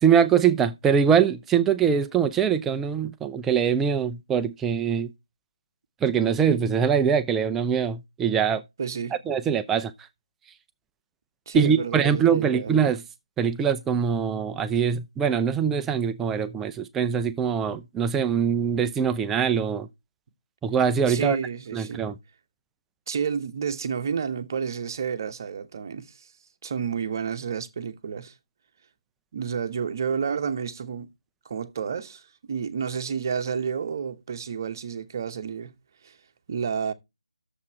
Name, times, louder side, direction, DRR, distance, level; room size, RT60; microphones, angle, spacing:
voice 1, 0.0-5.1 6.0-8.6 9.3-9.9 11.5-13.0 13.4-19.9 20.6-21.4 21.7-22.1, right 7 dB, 10° right, 0.5 m, -23 dB
voice 2, 8.8-9.2 11.5-12.7 21.1-22.0 23.1-26.3 26.6-28.3 29.3-31.1 31.4-35.7 36.0-36.1 36.5-36.9, right 6 dB, 40° right, 1.0 m, -30 dB
9.6 x 7.1 x 4.5 m
figure-of-eight pair, 155°, 3 cm